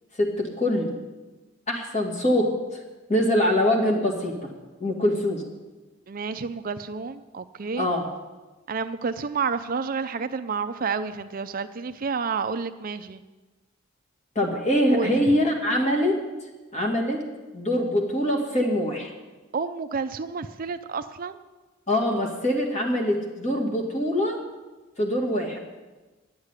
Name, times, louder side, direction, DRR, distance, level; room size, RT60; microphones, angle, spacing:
voice 1, 0.2-0.9 1.7-2.5 3.1-4.5 4.8-5.4 7.8-8.1 14.4-16.2 16.7-17.3 17.5-19.1 21.9-24.4 25.0-25.6, left 1 dB, 35° left, 0 dB, 2.3 m, -24 dB
voice 2, 6.1-7.9 8.7-13.2 14.9-15.2 19.5-21.4, right 5 dB, 45° right, 11 dB, 0.5 m, -30 dB
10.5 x 8.1 x 9.8 m, 1.2 s
head